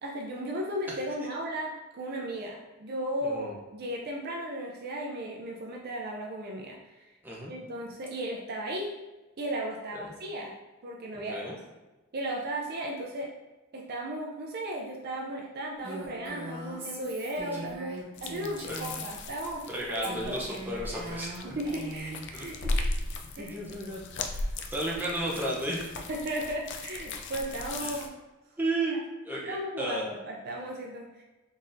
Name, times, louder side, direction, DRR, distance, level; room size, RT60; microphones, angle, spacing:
voice 1, 0.0-7.1 7.5-8.9 9.4-10.5 10.8-11.5 12.1-13.3 13.7-17.9 18.2-19.6 20.0-20.4 21.4-22.6 23.4-23.6 26.1-28.1 29.5-31.2, right 1 dB, 45° right, -1 dB, 0.4 m, -35 dB
voice 2, 3.2-3.6 7.2-7.5 9.9-10.1 11.1-11.6 18.7-18.8 19.7-21.4 22.3-22.5 22.7-22.9 23.4-24.1 24.3-25.8 27.8-28.0 28.6-29.0 29.2-30.1, right 1 dB, 10° right, -5 dB, 0.7 m, -33 dB
Female speech woman speaking, 15.8-19.1 20.0-22.3, right 1 dB, 25° right, 1.4 m, -40 dB
sound 1, 18.2-28.1, left 2 dB, 55° left, 0.4 m, -37 dB
3.9 x 3.6 x 2.6 m, 1.1 s
head